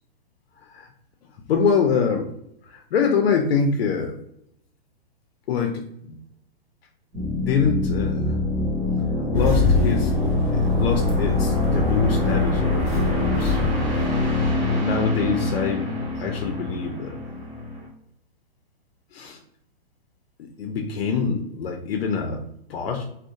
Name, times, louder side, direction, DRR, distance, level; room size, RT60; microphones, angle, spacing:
voice 1, 1.5-2.3 2.6-4.2 5.5-6.2 7.2-8.4 9.3-10.1 10.5-13.6 14.8-15.9 16.2-17.2 19.1-19.4 20.4-23.0, left 5 dB, 75° left, 2 dB, 0.5 m, -25 dB
sound 1, 7.1-17.9, left 2 dB, 15° right, 0.6 m, -25 dB
Engine starting, 9.3-14.9, left 3 dB, 30° left, 0.6 m, -25 dB
2.7 x 2.1 x 2.4 m, 0.74 s
hypercardioid pair, 145°, 30 cm